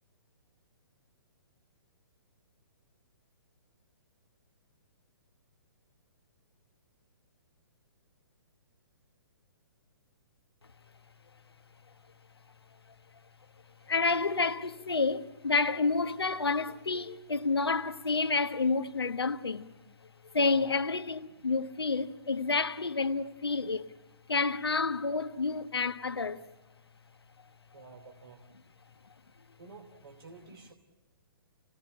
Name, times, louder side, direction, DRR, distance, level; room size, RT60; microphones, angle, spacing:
voice 1, 13.9-19.7 20.3-23.9 24.3-26.4, left 4 dB, 85° left, 1.2 m, -29 dB
voice 2, 20.4-20.7 27.7-28.6 29.6-30.7, right 3 dB, 70° right, 3.0 m, -50 dB
27.0 x 18.5 x 8.6 m
figure-of-eight pair, 125°, 13 cm